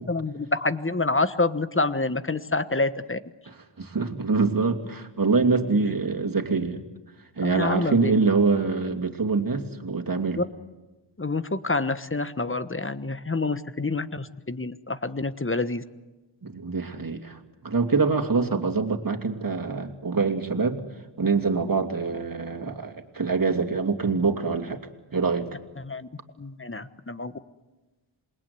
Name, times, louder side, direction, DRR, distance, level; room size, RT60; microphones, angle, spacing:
voice 1, 0.1-3.2 7.4-8.2 10.4-10.5 11.2-15.8 25.8-26.1 26.4-27.3, left 3 dB, 25° left, 12 dB, 1.3 m, -27 dB
voice 2, 3.8-6.8 7.4-10.4 16.4-20.8 21.2-24.8 25.1-25.5, right 4 dB, 45° right, 4 dB, 2.8 m, -25 dB
27.5 x 21.0 x 9.6 m, 1.2 s
wide cardioid pair, 60°, 49 cm